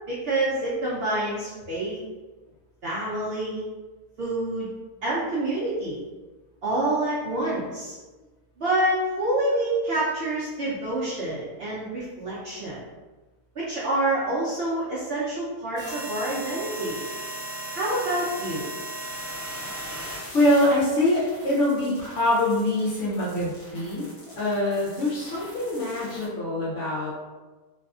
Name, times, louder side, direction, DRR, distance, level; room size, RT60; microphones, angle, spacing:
voice 1, 0.1-2.0 2.8-3.6 4.2-4.7 5.0-6.0 6.6-7.9 8.6-12.8 13.5-17.0 17.7-18.7, right 1 dB, 65° right, -8 dB, 0.6 m, -27 dB
sound 1, 15.8-26.3, right 1 dB, 45° left, 0.4 m, -38 dB
voice 2, 20.3-24.1 24.4-27.1, left 1 dB, 65° left, -6 dB, 0.8 m, -24 dB
2.6 x 2.4 x 2.3 m, 1.2 s
omnidirectional pair, 1.6 m